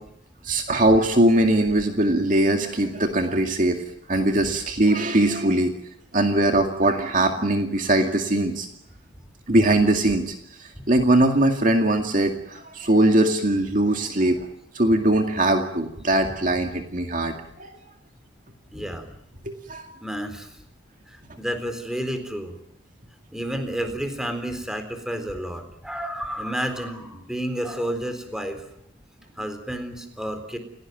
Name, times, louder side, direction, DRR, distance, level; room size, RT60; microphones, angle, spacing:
voice 1, 0.4-3.8 4.1-5.7 6.1-8.7 9.5-14.5 14.7-17.8 19.5-19.8, right 1 dB, 40° right, 5 dB, 2.2 m, -21 dB
voice 2, 18.7-19.1 20.0-20.6 21.1-22.5 23.3-28.7 29.4-30.6, equal, 5° right, 7 dB, 3.9 m, -30 dB
29.5 x 17.5 x 9.2 m, 0.76 s
head